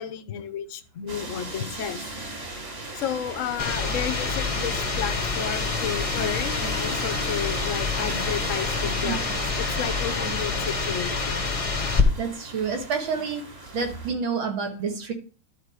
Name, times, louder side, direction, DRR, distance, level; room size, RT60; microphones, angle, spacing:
voice 1, 0.0-2.0 2.9-9.3 9.6-11.5, left 8 dB, 55° left, 10 dB, 0.9 m, -32 dB
sound 1, 1.1-14.1, right 1 dB, 30° right, 1.8 m, -37 dB
sound 2, 3.6-12.0, left 4 dB, 30° left, 0.7 m, -27 dB
voice 2, 11.7-13.5 13.7-15.1, right 5 dB, 70° right, 4 dB, 2.4 m, -29 dB
12.0 x 4.4 x 4.9 m, 0.37 s
omnidirectional pair, 2.3 m